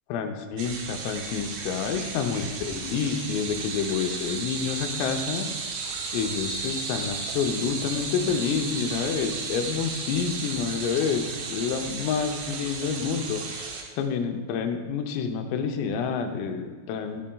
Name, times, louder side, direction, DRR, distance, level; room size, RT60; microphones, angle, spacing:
voice 1, 0.1-5.8 6.1-17.2, left 6 dB, 85° left, 5 dB, 3.4 m, -28 dB
sound 1, 0.6-13.8, right 4 dB, 75° right, 2.5 m, -34 dB
18.0 x 7.5 x 2.3 m, 1.3 s
omnidirectional pair, 5.9 m